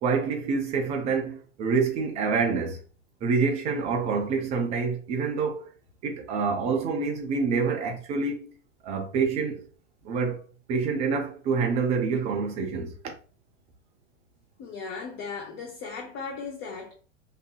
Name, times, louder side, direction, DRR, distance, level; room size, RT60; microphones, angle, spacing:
voice 1, 0.0-2.8 3.2-5.7 6.0-8.5 8.8-9.6 10.0-10.4 10.7-13.1, right 5 dB, 20° right, 0.4 m, -27 dB
voice 2, 14.6-16.9, left 5 dB, 35° left, 0.6 m, -37 dB
2.6 x 2.4 x 2.2 m
figure-of-eight pair, 90°, 37 cm